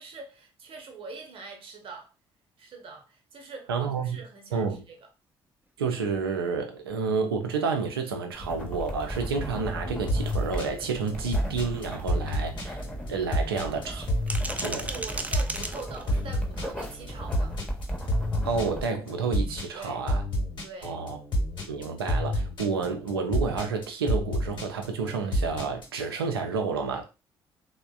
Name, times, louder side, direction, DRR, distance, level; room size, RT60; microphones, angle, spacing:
voice 1, 0.0-2.1 2.6-5.1 14.8-17.6 19.7-20.1 20.6-21.0, right 4 dB, 50° right, 0.8 m, -43 dB
voice 2, 3.7-4.2 4.5-4.8 5.8-12.8 13.1-14.0 14.6-14.9 18.4-20.2 20.8-21.2 21.7-27.0, right 5 dB, 80° right, 0.4 m, -30 dB
sound 1, 8.3-18.9, equal, 10° left, 0.8 m, -37 dB
sound 2, 10.1-26.0, equal, 40° left, 1.0 m, -30 dB
sound 3, 12.2-13.2 14.0-16.2, right 2 dB, 10° right, 0.4 m, -37 dB
3.2 x 2.1 x 2.3 m
figure-of-eight pair, 45°, 12 cm